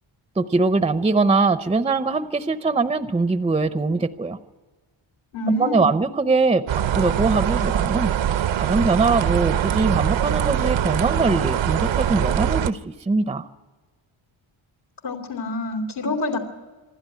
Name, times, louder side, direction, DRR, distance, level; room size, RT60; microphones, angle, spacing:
voice 1, 0.4-4.4 5.6-8.1 8.6-13.5, right 3 dB, 15° right, 11 dB, 0.5 m, -22 dB
voice 2, 5.3-5.9 15.0-16.4, left 2 dB, 85° left, 1 dB, 3.1 m, -26 dB
sound 1, 6.7-12.7, right 10 dB, 70° right, 0.7 m, -22 dB
27.0 x 12.0 x 9.2 m, 1.3 s
wide cardioid pair, 165°, 48 cm